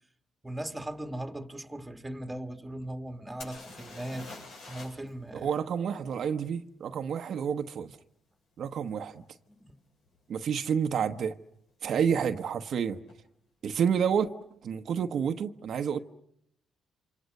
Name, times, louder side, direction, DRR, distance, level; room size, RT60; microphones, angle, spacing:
voice 1, 0.4-5.5 9.5-9.8, right 1 dB, 10° right, 1.8 m, -39 dB
sound 1, 3.4-5.1 5.4-5.5 8.9-9.0 9.6-9.8 10.1-10.7 12.7-12.8 13.1-13.2, left 3 dB, 80° left, 7.9 m, -46 dB
voice 2, 5.3-7.9 8.6-9.2 10.3-11.3 11.8-13.0 13.6-16.0, right 7 dB, 65° right, 1.0 m, -29 dB
28.5 x 26.0 x 6.6 m
cardioid pair, 90°, 0 cm